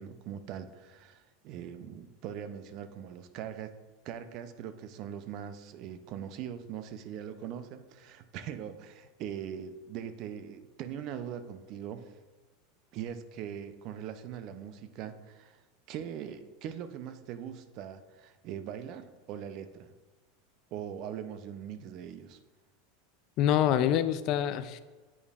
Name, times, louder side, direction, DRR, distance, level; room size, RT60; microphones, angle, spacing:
voice 1, 0.0-3.7 4.0-12.1 12.9-15.6 15.9-19.9 20.7-22.4, right 9 dB, 55° right, 10 dB, 0.5 m, -41 dB
voice 2, 23.4-24.8, left 10 dB, 55° left, 13 dB, 0.4 m, -26 dB
8.4 x 5.1 x 2.4 m, 1.3 s
hypercardioid pair, 105°, 0 cm